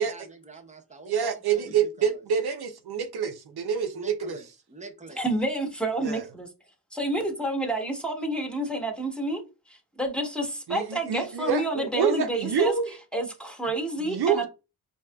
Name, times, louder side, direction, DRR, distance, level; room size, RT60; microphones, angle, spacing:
voice 1, 0.0-2.2 3.9-5.2, right 4 dB, 20° right, 0.7 m, -45 dB
voice 2, 1.1-4.4 6.0-6.2 10.7-13.0 14.0-14.5, right 7 dB, 70° right, 0.6 m, -27 dB
voice 3, 5.2-6.5 6.9-9.4 9.7-12.7 13.1-14.5, right 1 dB, ahead, 1.0 m, -29 dB
4.5 x 2.8 x 2.2 m
wide cardioid pair, 80°, 40 cm